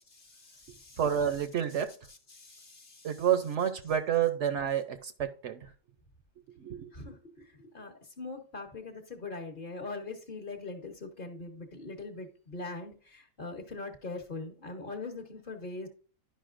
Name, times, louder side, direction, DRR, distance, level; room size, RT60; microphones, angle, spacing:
voice 1, 0.2-1.0 2.3-3.1 6.8-15.9, left 3 dB, 40° left, 1.1 m, -42 dB
voice 2, 1.0-1.9 3.0-5.7 6.6-6.9, right 9 dB, 65° right, 0.9 m, -29 dB
11.5 x 5.4 x 2.5 m
omnidirectional pair, 1.4 m